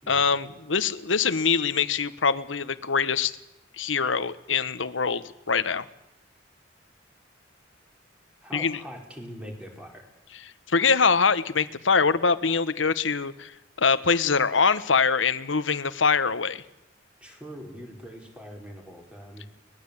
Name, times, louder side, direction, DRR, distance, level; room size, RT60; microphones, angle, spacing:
voice 1, 0.1-3.3 3.7-5.9 8.5-8.8 10.7-13.5 13.8-16.6, left 5 dB, 80° left, 13 dB, 1.2 m, -23 dB
voice 2, 8.4-10.1 17.2-19.5, equal, 5° right, 1 dB, 4.7 m, -42 dB
23.0 x 20.0 x 8.5 m, 0.89 s
head